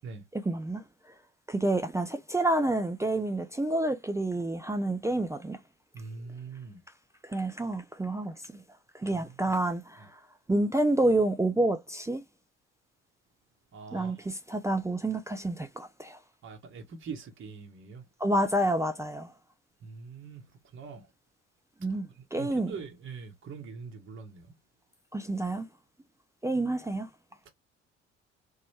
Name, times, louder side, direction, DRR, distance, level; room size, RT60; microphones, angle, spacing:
voice 1, 0.3-0.8 1.5-5.6 7.2-8.3 8.9-10.1 10.5-12.2 13.9-16.2 18.2-19.3 21.8-22.7 25.1-25.7 26.4-27.1, right 1 dB, 10° right, 0.4 m, -28 dB
voice 2, 5.9-6.8 9.0-9.6 13.7-14.3 16.4-18.0 19.8-21.1 21.9-24.5, right 5 dB, 35° right, 0.9 m, -43 dB
3.0 x 2.2 x 3.1 m
figure-of-eight pair, 50°, 36 cm